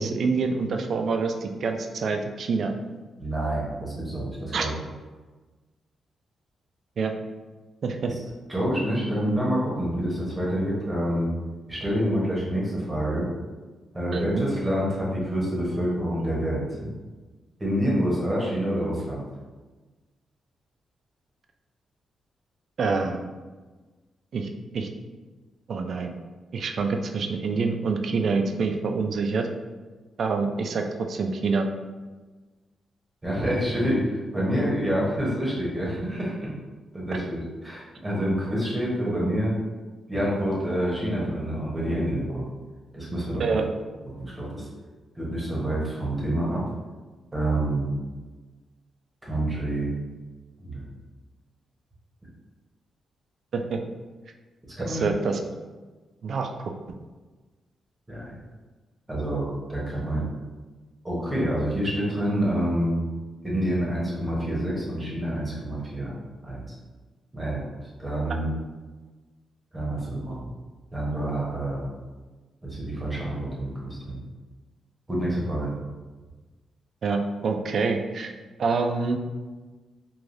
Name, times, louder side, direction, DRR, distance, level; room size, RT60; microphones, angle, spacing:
voice 1, 0.0-2.7 4.5-4.7 7.0-7.1 7.8-8.1 14.1-14.5 22.8-23.3 24.3-24.5 24.7-24.9 25.7-26.1 26.5-29.5 30.2-31.7 43.4-43.7 53.5-53.8 54.9-55.4 56.2-56.5 77.0-78.3 78.6-79.2, right 4 dB, 60° right, 4 dB, 0.3 m, -26 dB
voice 2, 3.2-4.7 8.1-8.2 8.5-11.3 11.7-13.3 13.9-16.9 17.6-19.2 33.2-36.3 36.9-39.5 40.1-42.5 42.9-43.4 44.2-44.7 45.1-46.6 47.3-47.9 49.2-49.9 50.6-50.9 54.8-55.0 58.1-58.4 59.1-60.3 61.0-63.0 63.4-66.1 66.4-66.7 67.3-67.6 68.0-68.5 69.7-70.5 70.9-71.9 72.6-74.2 75.1-75.7, right 1 dB, 15° right, -5 dB, 0.8 m, -27 dB
3.2 x 2.2 x 2.5 m, 1.3 s
cardioid pair, 100°, 0 cm